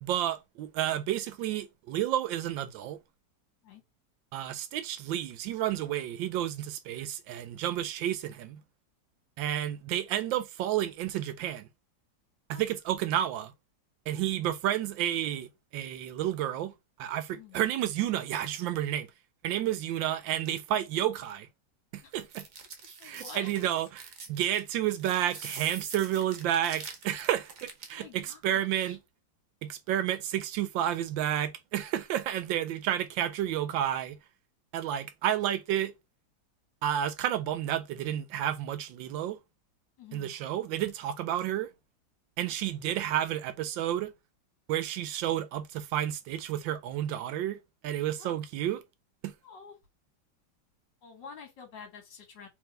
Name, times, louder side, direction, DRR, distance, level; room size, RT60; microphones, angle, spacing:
voice 1, 0.0-3.0 4.3-8.6 9.4-11.7 12.5-13.5 14.1-16.7 17.0-19.1 19.4-21.5 21.9-22.5 23.0-24.0 24.3-29.0 29.6-34.2 34.7-35.9 36.8-39.4 40.1-41.7 42.4-44.1 44.7-47.6 47.8-48.8 49.2-49.3, right 11 dB, 85° right, 1.3 m, -31 dB
sound 1, 22.1-28.0, right 5 dB, 55° right, 1.1 m, -44 dB
voice 2, 23.0-23.5 27.9-29.0 40.0-40.3 48.2-48.4 49.4-49.8 51.0-52.5, left 6 dB, 70° left, 2.0 m, -48 dB
3.5 x 3.1 x 3.2 m
omnidirectional pair, 2.1 m